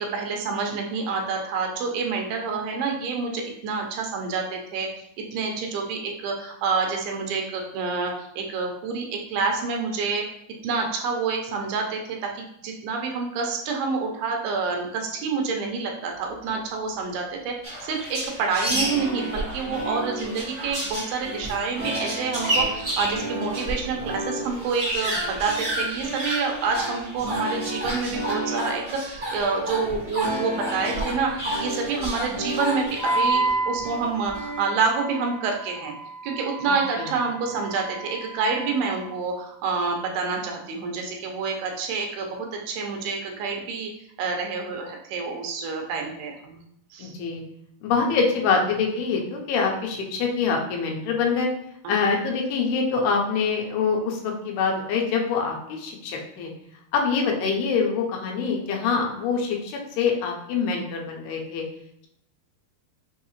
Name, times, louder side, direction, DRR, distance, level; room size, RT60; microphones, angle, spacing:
voice 1, 0.0-4.9 5.3-10.2 10.6-17.5 17.8-35.9 36.2-43.9 44.2-46.6 46.9-47.1 51.8-52.0, right 4 dB, 85° right, 1 dB, 2.6 m, -28 dB
sound 1, 17.6-23.8 24.1-24.2 24.4-33.2, right 1 dB, 65° right, 0.5 m, -31 dB
sound 2, 18.7-34.6, right 1 dB, 50° right, 1.1 m, -34 dB
Wind instrument woodwind instrument, 33.0-39.1, right 2 dB, 50° left, 1.4 m, -30 dB
voice 2, 47.0-47.4 47.8-51.5 51.9-56.5 56.9-61.6, left 5 dB, 90° left, 1 dB, 2.6 m, -25 dB
6.4 x 2.8 x 2.9 m, 0.75 s
omnidirectional pair, 4.5 m